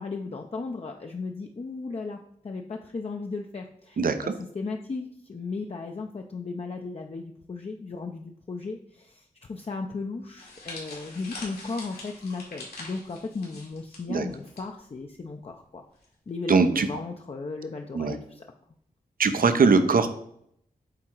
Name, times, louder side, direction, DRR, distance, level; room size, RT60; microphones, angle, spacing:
voice 1, 0.0-15.8 16.3-18.4, left 3 dB, 40° left, 2 dB, 0.6 m, -36 dB
voice 2, 4.0-4.3 14.1-14.3 16.5-16.9 17.9-18.1 19.2-20.1, right 4 dB, 65° right, 9 dB, 0.7 m, -21 dB
sound 1, 10.4-14.6 14.9-15.1 16.0-16.3, left 2 dB, 85° left, 2.6 m, -43 dB
8.6 x 3.7 x 4.5 m, 0.70 s
wide cardioid pair, 80°, 16 cm